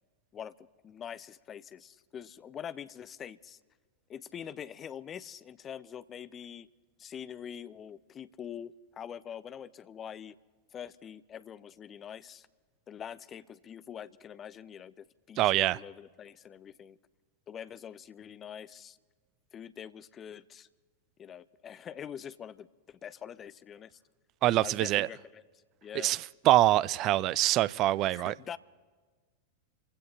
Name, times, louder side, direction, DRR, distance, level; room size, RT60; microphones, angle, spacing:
voice 1, 0.8-3.6 4.1-6.7 7.0-10.4 10.7-12.5 12.9-17.0 17.5-19.0 19.5-20.7 21.2-24.0 24.6-25.4 25.8-26.1 28.1-28.6, left 8 dB, 25° left, 0.5 m, -44 dB
voice 2, 15.4-15.8 24.4-25.1 26.0-26.2 26.5-28.3, right 15 dB, 35° right, 0.3 m, -24 dB
27.5 x 16.0 x 2.9 m
figure-of-eight pair, 90°, 0 cm